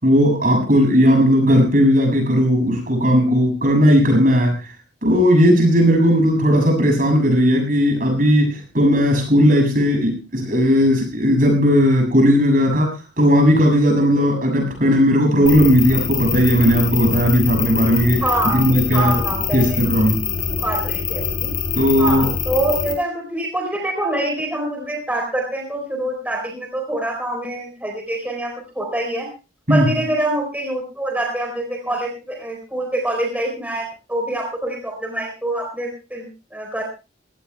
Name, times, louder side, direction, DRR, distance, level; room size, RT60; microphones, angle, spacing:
voice 1, 0.0-4.6 5.0-18.2 18.5-19.2 19.5-20.2 21.8-22.3 29.7-29.9, equal, 50° right, 3 dB, 7.0 m, -16 dB
sound 1, 15.5-22.9, left 6 dB, 50° left, 4.7 m, -25 dB
voice 2, 18.2-19.8 20.6-21.5 22.0-29.3 29.7-36.8, right 1 dB, 10° right, 1 dB, 4.2 m, -25 dB
24.5 x 17.5 x 2.3 m, 0.30 s
head